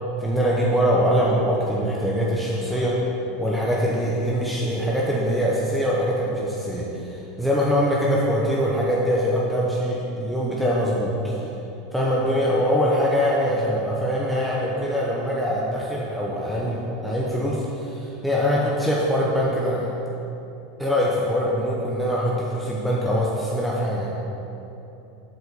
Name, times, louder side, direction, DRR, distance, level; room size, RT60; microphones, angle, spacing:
voice 1, 0.2-3.0 3.4-11.4 11.9-19.9 20.8-24.1, equal, ahead, -5 dB, 0.9 m, -23 dB
8.1 x 4.4 x 7.0 m, 2.9 s
supercardioid pair, 140°, 0 cm